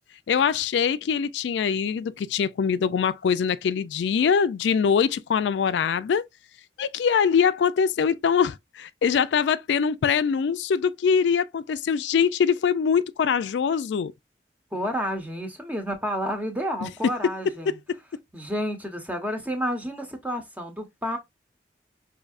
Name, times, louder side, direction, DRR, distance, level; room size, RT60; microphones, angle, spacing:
voice 1, 0.3-6.2 6.8-14.1 16.8-16.9, left 6 dB, 85° left, 0.3 m, -23 dB
voice 2, 14.7-17.8 18.3-21.2, equal, 10° right, 0.9 m, -30 dB
5.3 x 2.7 x 2.4 m
head